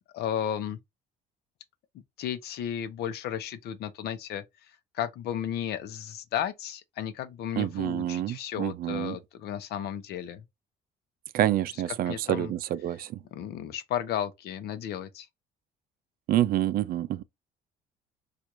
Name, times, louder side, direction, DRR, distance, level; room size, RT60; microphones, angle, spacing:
voice 1, 0.1-0.8 2.2-4.4 4.9-10.4 12.1-12.5 13.3-15.3, left 10 dB, 75° left, 0.7 m, -34 dB
voice 2, 7.6-9.2 11.3-13.1 16.3-17.2, right 12 dB, 60° right, 0.4 m, -27 dB
4.5 x 2.5 x 2.5 m
cardioid pair, 110°, 17 cm